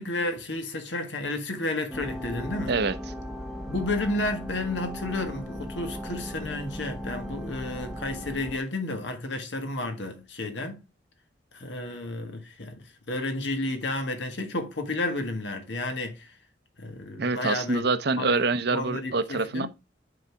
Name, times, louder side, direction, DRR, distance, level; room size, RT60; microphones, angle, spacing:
voice 1, 0.0-2.7 3.7-10.8 11.5-16.3 16.8-17.8 18.2-18.4 18.7-19.7, left 2 dB, 75° left, 1.6 m, -31 dB
sound 1, 1.9-8.6, equal, ahead, 0.8 m, -37 dB
voice 2, 17.2-19.7, right 3 dB, 65° right, 0.8 m, -25 dB
9.2 x 4.1 x 4.5 m
head